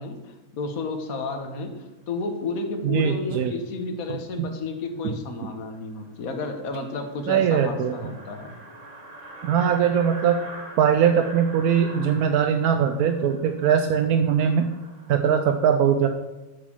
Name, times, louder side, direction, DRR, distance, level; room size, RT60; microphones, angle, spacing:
voice 1, 0.0-1.7 2.1-8.5, left 3 dB, 70° left, 5 dB, 1.5 m, -32 dB
voice 2, 2.8-3.5 4.4-4.5 7.3-7.9 9.4-10.4 10.8-14.7 15.1-16.1, right 8 dB, 80° right, 6 dB, 1.1 m, -21 dB
sound 1, 5.4-5.5 5.9-6.0 6.2-6.3 6.6-15.3, right 2 dB, 55° right, 2.1 m, -43 dB
8.8 x 5.1 x 7.2 m, 1.1 s
omnidirectional pair, 1.6 m